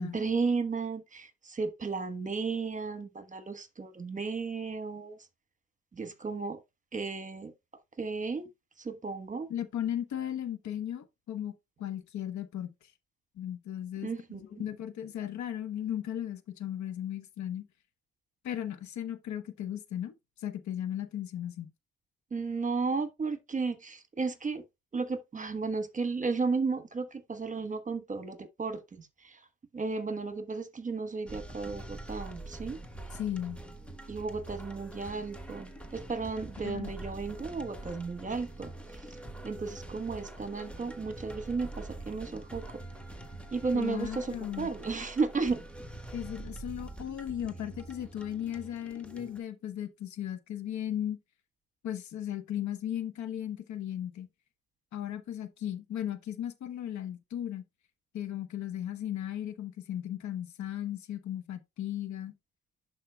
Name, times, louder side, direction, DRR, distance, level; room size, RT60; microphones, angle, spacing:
voice 1, 0.0-5.2 5.9-6.6 6.9-7.5 8.0-8.5 8.8-9.5 14.0-14.6 22.3-24.6 24.9-29.5 29.7-32.8 34.1-39.0 39.4-42.6 43.5-45.6, right 4 dB, 25° right, 1.2 m, -34 dB
voice 2, 9.5-11.5 11.8-12.7 13.4-17.7 18.4-20.1 20.4-21.7 33.1-33.6 36.6-36.9 43.7-44.7 46.1-51.2 51.8-54.3 54.9-57.6 58.1-62.3, left 10 dB, 70° left, 1.0 m, -36 dB
sound 1, 31.3-49.4, right 2 dB, 5° left, 1.3 m, -45 dB
11.0 x 4.7 x 2.2 m
cardioid pair, 90°, 30 cm